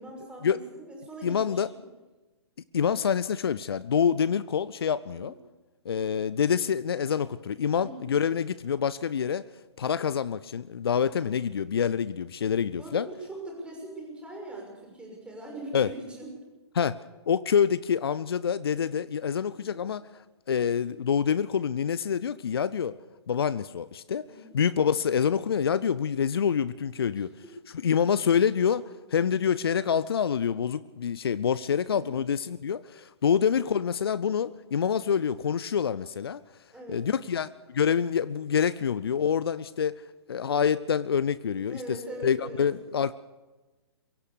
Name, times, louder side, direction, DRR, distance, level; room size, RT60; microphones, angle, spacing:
voice 1, 0.0-1.6 5.1-5.4 7.8-8.1 12.8-16.3 19.5-19.8 24.3-24.6 27.1-27.3 31.9-32.2 36.7-37.1 41.7-42.7, right 1 dB, 5° right, 0 dB, 6.1 m, -41 dB
voice 2, 1.2-1.7 2.7-5.3 5.8-9.5 9.8-13.1 15.7-15.9 16.7-20.0 20.5-22.9 23.3-24.3 24.5-27.3 27.7-36.4 36.9-40.0 40.3-42.0 42.2-43.1, left 7 dB, 60° left, 17 dB, 0.6 m, -26 dB
23.5 x 16.5 x 7.0 m, 1.1 s
figure-of-eight pair, 120°, 14 cm